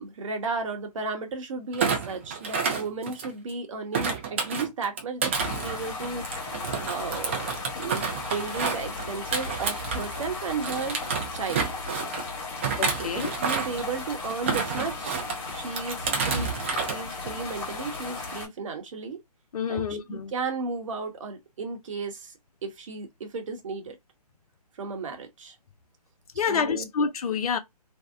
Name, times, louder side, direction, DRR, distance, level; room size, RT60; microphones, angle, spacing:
voice 1, 0.0-6.2 6.9-11.0 11.3-11.7 12.9-15.2 15.5-19.2 19.7-22.3 22.6-24.0 24.8-25.5 26.3-26.9, right 4 dB, 50° right, 0.9 m, -34 dB
Thump thud, 1.7-3.5 3.9-10.3 10.6-12.2 12.6-13.8 14.3-15.4 15.8-17.0 17.3-17.6, right 5 dB, 20° right, 0.3 m, -30 dB
sound 1, 5.3-18.5, left 3 dB, 35° left, 1.2 m, -36 dB
voice 2, 12.8-13.3 19.5-20.3 26.4-27.6, left 6 dB, 65° left, 0.5 m, -28 dB
2.6 x 2.0 x 2.4 m
figure-of-eight pair, 145°, 21 cm